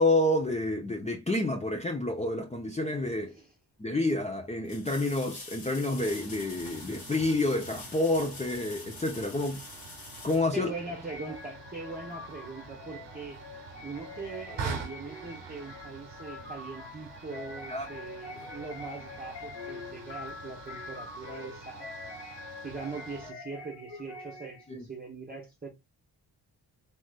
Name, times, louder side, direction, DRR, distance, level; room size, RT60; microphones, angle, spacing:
voice 1, 0.0-3.4 3.8-9.6 10.2-10.7 17.7-17.9 24.7-24.8, left 2 dB, 15° left, 0.7 m, -29 dB
sound 1, 3.3-3.4 4.6-11.3 14.1-14.2, left 4 dB, 55° left, 1.3 m, -46 dB
sound 2, 6.0-23.3, right 5 dB, 85° right, 0.8 m, -45 dB
voice 2, 10.5-13.4 13.8-21.9 22.6-25.7, right 4 dB, 20° right, 1.1 m, -41 dB
sound 3, 11.1-24.7, left 3 dB, 75° left, 1.2 m, -45 dB
3.1 x 3.0 x 2.3 m
supercardioid pair, 45°, 43 cm